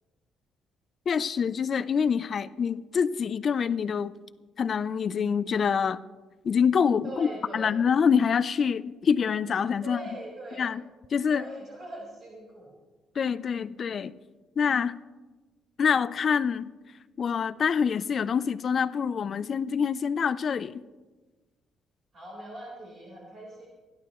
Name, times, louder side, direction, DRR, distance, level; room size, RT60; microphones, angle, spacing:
voice 1, 1.1-4.1 4.6-6.0 6.4-7.3 7.5-10.0 10.6-10.8 11.1-11.4 13.2-14.1 14.6-15.0 15.8-16.7 17.2-20.8, left 6 dB, 45° left, 0.5 m, -26 dB
voice 2, 7.0-7.8 9.8-10.7 11.3-12.8 22.1-23.7, right 1 dB, 50° right, 4.1 m, -41 dB
27.0 x 11.5 x 3.1 m
cardioid pair, 125°, 0 cm